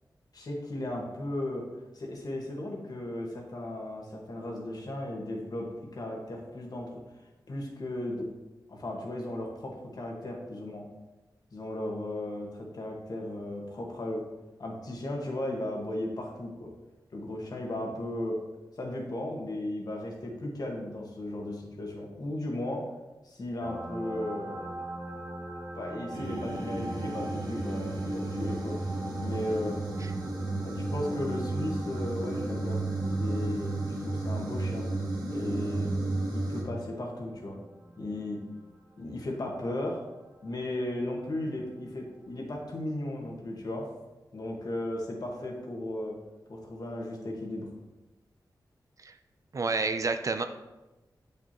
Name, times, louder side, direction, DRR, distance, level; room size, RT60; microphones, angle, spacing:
voice 1, 0.3-1.7 1.9-7.0 7.5-8.3 8.7-10.8 11.5-14.2 14.6-16.7 17.1-18.4 18.8-22.9 23.2-24.7 25.7-28.8 29.2-29.8 30.6-33.8 34.0-34.9 35.3-35.9 36.3-37.6 38.0-38.4 39.0-40.0 40.4-43.9 44.3-46.2 46.5-47.7, left 1 dB, 60° left, 0 dB, 1.5 m, -35 dB
sound 1, 23.6-40.8 42.4-42.5, right 1 dB, 25° right, 1.2 m, -44 dB
sound 2, 26.1-36.6, right 2 dB, 75° right, 2.1 m, -32 dB
voice 2, 49.5-50.4, right 4 dB, 45° right, 8 dB, 0.4 m, -29 dB
7.8 x 5.3 x 2.9 m, 1.1 s
wide cardioid pair, 95°, 8 cm